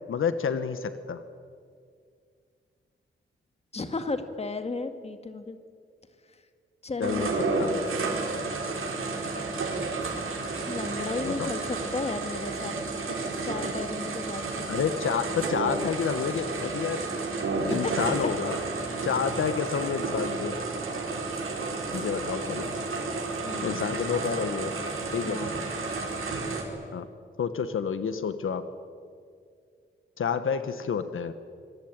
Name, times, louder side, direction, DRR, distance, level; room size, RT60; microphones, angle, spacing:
voice 1, 0.1-1.2 7.0-7.3 7.6-7.8 11.2-11.5 14.7-17.0 17.4-18.6 19.0-20.5 21.9-22.7 23.6-24.7 25.1-25.4 26.9-27.1 27.4-28.6 30.2-31.3, left 6 dB, 75° left, 11 dB, 1.3 m, -29 dB
voice 2, 3.7-5.6 6.8-7.5 10.7-12.8 13.1-13.2 13.4-14.7 17.7-17.9 23.4-24.0 25.3-25.6, left 3 dB, 30° left, 8 dB, 1.9 m, -34 dB
sound 1, 7.0-26.6, right 3 dB, 90° right, 5.1 m, -31 dB
26.0 x 23.0 x 8.9 m, 2.2 s
wide cardioid pair, 175°, 21 cm